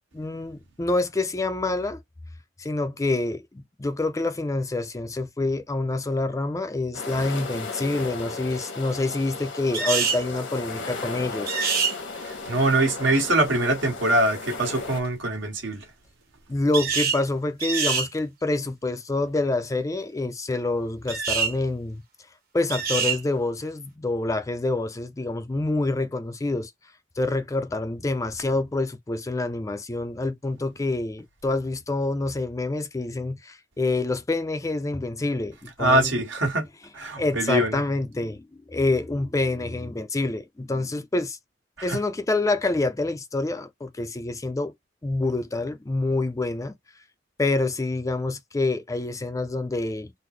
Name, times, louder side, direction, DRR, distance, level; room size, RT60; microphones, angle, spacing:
voice 1, 0.1-2.0 2.6-11.7 16.5-22.0 22.5-26.7 27.2-36.1 37.2-41.4 41.8-44.7 45.0-46.7 47.4-50.1, left 2 dB, 15° left, 0.4 m, -27 dB
sound 1, 6.9-15.0, left 3 dB, 80° left, 1.1 m, -35 dB
sound 2, 9.7-10.2 11.5-11.9 16.7-17.2 17.6-18.1 21.1-21.5 22.7-23.2, right 6 dB, 55° right, 1.2 m, -25 dB
voice 2, 12.2-15.8 35.8-36.6 36.9-37.8 41.9-42.0, right 1 dB, 80° right, 1.5 m, -23 dB
3.7 x 2.0 x 3.1 m
head